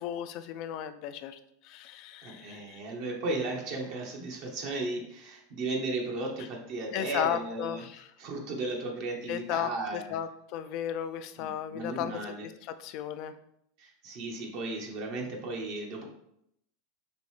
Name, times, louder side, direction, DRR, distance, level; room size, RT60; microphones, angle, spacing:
voice 1, 0.0-2.8 6.9-8.1 9.3-13.4, left 10 dB, 55° left, 11 dB, 0.3 m, -35 dB
voice 2, 2.2-7.8 8.2-10.1 11.4-12.5 13.8-16.1, right 2 dB, 60° right, 0 dB, 0.9 m, -35 dB
5.1 x 2.7 x 3.2 m, 0.75 s
hypercardioid pair, 105°, 0 cm